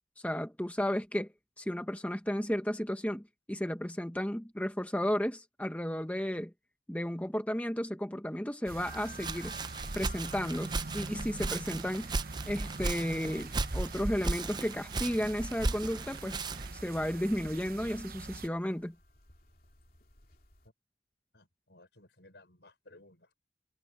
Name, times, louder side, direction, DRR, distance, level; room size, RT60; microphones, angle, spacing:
voice 1, 0.2-1.3 1.6-6.5 6.9-9.6 9.9-12.1 12.5-18.9, equal, 10° left, 1.2 m, -33 dB
sound 1, 8.7-18.5, right 3 dB, 55° right, 0.9 m, -45 dB
sound 2, 8.8-20.7, left 1 dB, 55° left, 2.8 m, -56 dB
Walk footsteps, 8.9-16.8, right 3 dB, 25° right, 0.5 m, -36 dB
voice 2, 21.3-23.3, left 2 dB, 70° left, 5.6 m, -58 dB
head